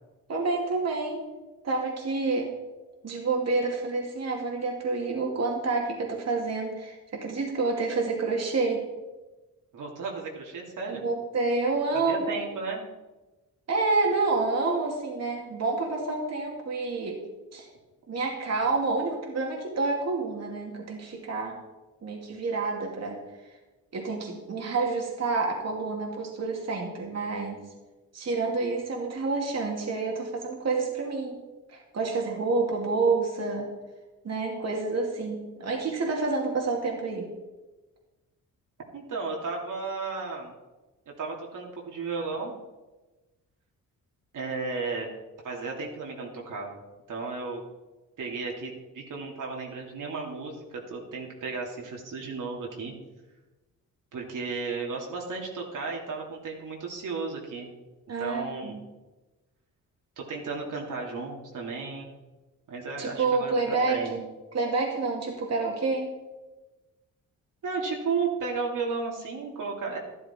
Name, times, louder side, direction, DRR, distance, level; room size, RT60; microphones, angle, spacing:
voice 1, 0.3-1.2 1.6-2.5 3.0-8.8 10.9-12.3 13.7-17.2 17.5-17.7 18.1-21.5 22.0-23.2 23.9-27.6 28.1-31.4 31.7-33.6 34.2-37.3 58.1-58.8 63.0-64.2 64.5-66.1, right 3 dB, 50° right, 0 dB, 2.5 m, -28 dB
voice 2, 9.7-11.0 11.9-12.8 38.9-40.5 41.2-42.5 44.3-45.1 45.4-46.8 47.1-47.6 48.2-52.9 54.1-57.7 58.2-58.8 60.2-62.2 62.7-64.2 67.6-70.0, right 4 dB, 65° right, -1 dB, 2.7 m, -34 dB
12.0 x 12.0 x 4.5 m, 1.1 s
cardioid pair, 90°, 34 cm